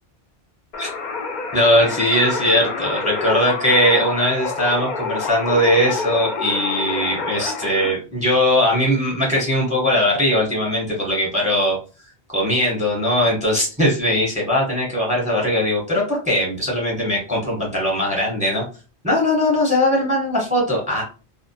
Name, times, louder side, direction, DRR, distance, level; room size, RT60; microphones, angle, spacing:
sound 1, 0.7-7.9, left 4 dB, 55° left, 0.5 m, -27 dB
voice 1, 1.5-11.8 12.3-18.6 19.0-21.0, left 1 dB, 10° right, -2 dB, 0.7 m, -20 dB
2.2 x 2.1 x 2.6 m, 0.35 s
omnidirectional pair, 1.1 m